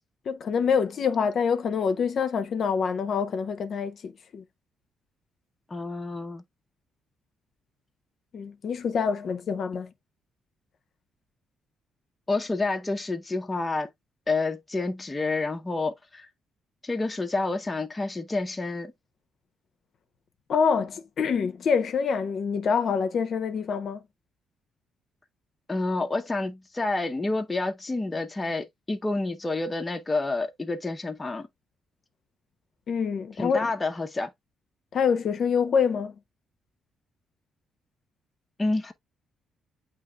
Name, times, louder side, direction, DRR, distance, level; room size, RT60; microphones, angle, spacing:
voice 1, 0.3-4.4 8.3-9.9 20.5-24.0 32.9-33.7 34.9-36.1, left 6 dB, 55° left, 0.6 m, -26 dB
voice 2, 5.7-6.4 12.3-13.9 14.3-16.3 16.8-18.9 25.7-31.5 33.4-34.3 38.6-38.9, left 3 dB, 20° left, 0.6 m, -29 dB
8.4 x 2.9 x 2.2 m
cardioid pair, 90°, 0 cm